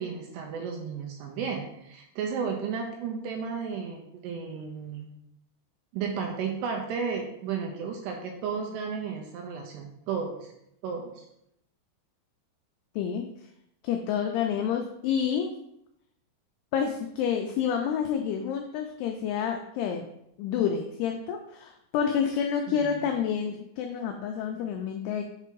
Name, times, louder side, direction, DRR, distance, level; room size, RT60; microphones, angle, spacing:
voice 1, 0.0-5.1 5.9-10.5 10.8-11.3 22.7-22.9, right 6 dB, 80° right, 2 dB, 2.6 m, -33 dB
voice 2, 13.0-13.3 13.8-15.5 16.7-20.1 20.4-25.2, left 8 dB, 85° left, 4 dB, 2.3 m, -29 dB
6.8 x 3.4 x 4.5 m, 0.79 s
omnidirectional pair, 5.2 m